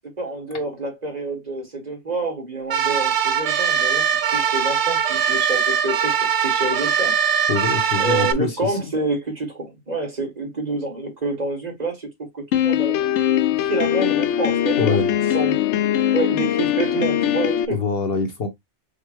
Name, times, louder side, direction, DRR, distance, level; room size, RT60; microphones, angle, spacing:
voice 1, 0.0-4.1 4.3-6.1 6.4-7.1 8.0-13.1 13.5-15.0 15.3-15.6 16.1-17.8, right 2 dB, 35° right, 1.7 m, -28 dB
sound 1, 2.7-8.3, right 7 dB, 70° right, 1.0 m, -21 dB
voice 2, 7.5-8.8 14.8-15.1 17.7-18.5, left 4 dB, 55° left, 1.1 m, -24 dB
Piano, 12.5-17.7, left 11 dB, 75° left, 0.9 m, -21 dB
5.0 x 2.2 x 4.6 m
omnidirectional pair, 1.2 m